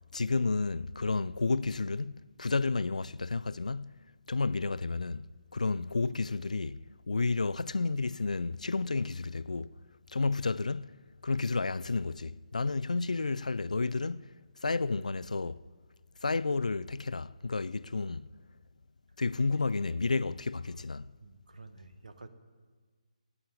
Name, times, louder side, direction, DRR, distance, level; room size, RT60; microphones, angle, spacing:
voice 1, 0.1-3.9 4.3-5.3 5.5-9.7 10.1-10.9 11.2-14.3 14.6-15.6 16.2-18.3 19.2-21.1, left 3 dB, 75° left, 0.4 m, -31 dB
voice 2, 21.2-22.3, right 3 dB, 75° right, 1.2 m, -50 dB
13.0 x 8.5 x 8.4 m
figure-of-eight pair, 145°, 4 cm